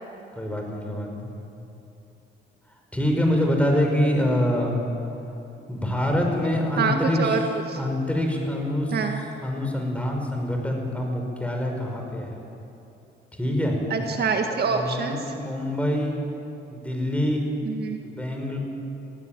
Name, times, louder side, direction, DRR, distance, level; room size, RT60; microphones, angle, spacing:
voice 1, 0.3-1.3 2.9-4.8 5.7-7.4 7.8-9.0 9.4-12.4 13.4-13.8 14.7-16.2 16.7-17.4 18.0-18.6, left 1 dB, 5° left, 2 dB, 5.3 m, -25 dB
voice 2, 6.8-7.4 7.7-7.8 8.9-9.2 13.9-15.2 17.6-18.0, right 5 dB, 55° right, 4 dB, 1.9 m, -25 dB
21.0 x 16.0 x 9.1 m, 2.9 s
cardioid pair, 90°, 20 cm